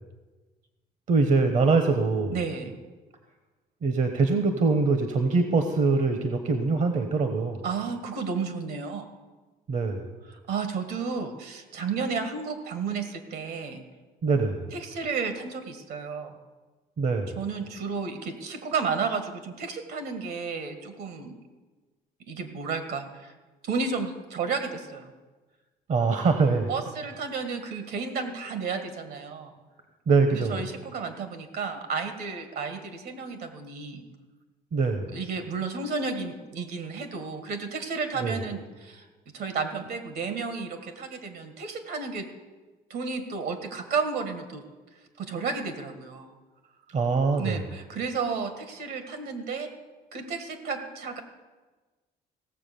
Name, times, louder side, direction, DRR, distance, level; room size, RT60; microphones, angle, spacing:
voice 1, 1.1-2.4 3.8-7.6 9.7-10.1 14.2-14.7 17.0-17.4 25.9-26.7 30.1-30.6 34.7-35.1 38.2-38.4 46.9-47.7, right 4 dB, 45° right, 7 dB, 1.1 m, -23 dB
voice 2, 2.3-2.7 7.6-9.1 10.5-13.8 14.7-16.4 17.4-21.3 22.3-23.3 23.6-25.1 26.7-29.6 30.3-34.0 35.1-39.1 39.3-42.3 42.9-44.6 45.2-46.3 47.4-49.7 50.1-51.2, right 5 dB, 70° right, 8 dB, 1.8 m, -32 dB
16.0 x 7.1 x 6.9 m, 1.3 s
cardioid pair, 110°, 17 cm